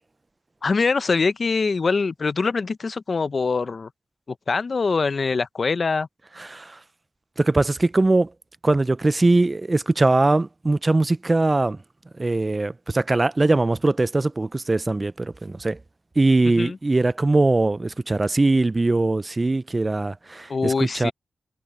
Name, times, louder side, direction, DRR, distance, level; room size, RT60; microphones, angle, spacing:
voice 1, 0.6-3.9 4.5-6.1 16.6-16.8 20.5-21.1, left 4 dB, 60° left, 0.7 m, -23 dB
voice 2, 6.4-6.8 7.4-8.3 8.6-11.8 12.2-15.8 16.2-21.1, right 2 dB, 35° right, 0.6 m, -21 dB
cardioid pair, 40°, 0 cm